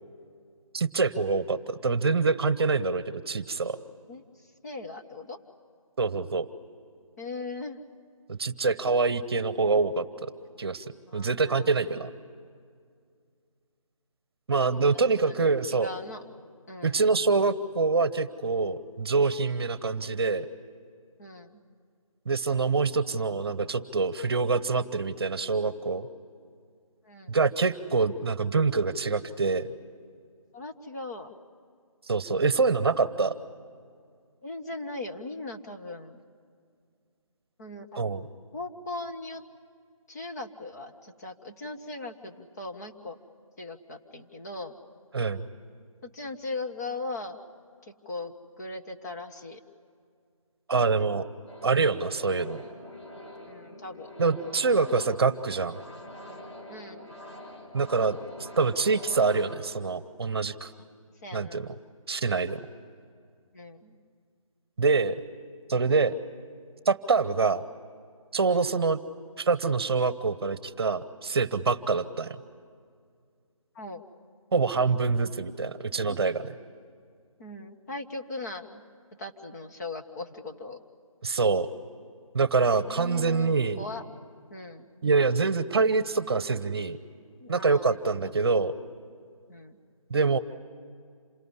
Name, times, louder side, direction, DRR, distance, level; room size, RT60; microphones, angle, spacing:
voice 1, 0.7-3.8 6.0-6.5 8.3-10.3 10.6-10.8 11.1-12.1 14.5-15.9 16.8-20.5 22.3-26.1 27.3-29.7 32.1-33.3 38.0-38.2 45.1-45.4 50.7-51.3 51.6-52.6 54.2-55.8 57.7-58.2 58.6-60.7 61.3-61.7 62.1-62.6 64.8-65.2 65.7-66.2 66.9-67.6 68.3-69.0 69.4-72.4 74.5-76.5 81.2-81.7 82.3-83.8 85.0-87.0 87.5-88.7 90.1-90.4, right 4 dB, 45° right, 15 dB, 1.0 m, -25 dB
voice 2, 4.1-5.4 7.2-7.8 11.1-12.0 14.7-15.4 15.7-16.2 16.7-17.1 21.2-21.6 27.0-27.3 30.5-31.4 34.4-36.2 37.6-38.0 38.5-39.4 40.1-43.2 43.6-44.8 46.0-47.4 47.8-49.6 53.5-54.1 56.7-57.1 60.7-60.9 61.2-61.7 63.5-64.0 68.5-68.7 73.7-74.1 76.0-76.2 77.4-78.8 79.2-80.8 82.7-84.0 84.5-84.9 87.4-88.0 88.2-88.4 89.5-89.8, left 2 dB, 30° left, 4 dB, 1.4 m, -39 dB
sound 1, 51.5-59.6, equal, 50° left, 5.7 m, -45 dB
27.5 x 19.0 x 9.7 m, 2.2 s
figure-of-eight pair, 160°, 18 cm